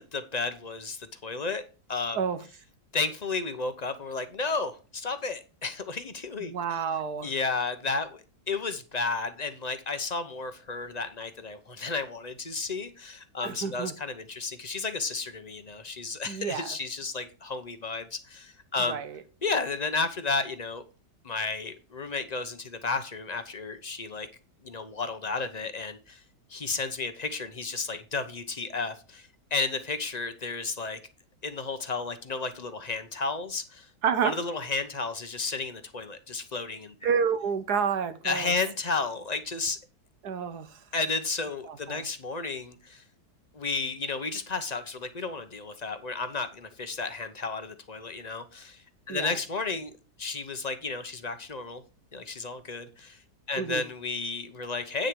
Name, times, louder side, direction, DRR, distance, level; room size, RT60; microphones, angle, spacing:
voice 1, 0.0-1.6 1.9-2.2 2.9-6.8 7.2-8.2 8.5-19.0 19.4-20.8 21.2-24.3 24.6-26.2 26.5-31.0 31.4-33.9 34.2-37.1 38.2-39.8 40.9-43.0 43.5-49.9 50.2-51.8 52.1-53.2 53.5-55.1, left 4 dB, 30° left, 0.9 m, -32 dB
voice 2, 6.4-7.3 13.4-13.9 16.3-16.7 18.8-19.2 34.0-34.4 37.0-38.5 40.2-40.8 41.6-42.1 49.1-49.4 53.6-53.8, right 6 dB, 70° right, 1.6 m, -29 dB
9.2 x 6.4 x 4.8 m
omnidirectional pair, 1.8 m